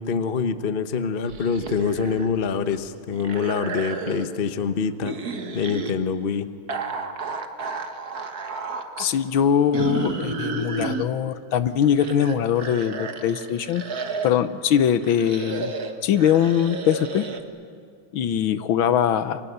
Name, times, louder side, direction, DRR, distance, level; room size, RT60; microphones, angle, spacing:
voice 1, 0.0-5.2 5.5-6.5, left 6 dB, 40° left, 10 dB, 0.8 m, -25 dB
sound 1, 1.3-2.4 2.7-4.4 5.0-5.9 6.7-9.1 9.7-11.0 11.7-14.4 15.0-17.4, right 4 dB, 45° right, 1.9 m, -32 dB
voice 2, 9.0-13.8 14.2-15.7 16.0-17.3 18.1-19.4, left 9 dB, 70° left, 12 dB, 1.6 m, -22 dB
28.5 x 24.5 x 8.0 m, 2.3 s
omnidirectional pair, 2.3 m